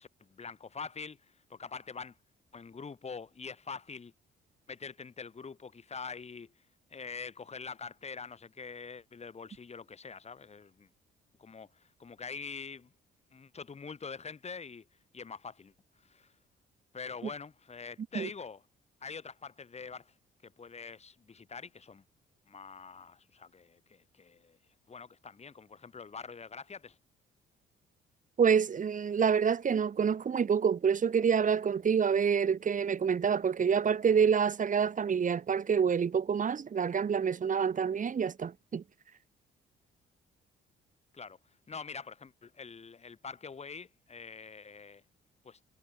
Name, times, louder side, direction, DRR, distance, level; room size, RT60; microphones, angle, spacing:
voice 1, 0.0-2.2 2.5-4.1 4.7-6.5 6.9-10.9 11.4-12.9 13.3-14.9 15.1-15.7 16.0-16.3 16.9-18.6 19.0-20.1 20.4-22.0 22.5-24.6 24.9-27.0 41.1-41.4 41.7-45.0 45.4-45.6, left 5 dB, 35° left, 2.6 m, -45 dB
voice 2, 28.4-38.8, right 7 dB, 40° right, 1.5 m, -27 dB
cardioid pair, 90°, 20 cm